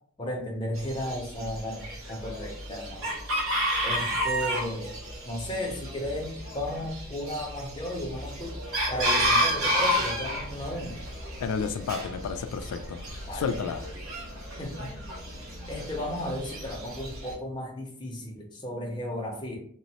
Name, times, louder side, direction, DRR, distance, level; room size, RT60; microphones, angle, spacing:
voice 1, 0.2-3.1 3.8-4.9 5.2-8.5 8.9-11.0 13.3-13.6 14.6-14.9 15.7-19.6, left 1 dB, 20° left, 0 dB, 0.5 m, -34 dB
Chicken rooster, 0.7-17.3, equal, 65° right, 0.9 m, -31 dB
voice 2, 11.4-13.9, left 6 dB, 85° left, 9 dB, 0.3 m, -32 dB
3.0 x 2.0 x 2.8 m, 0.63 s
head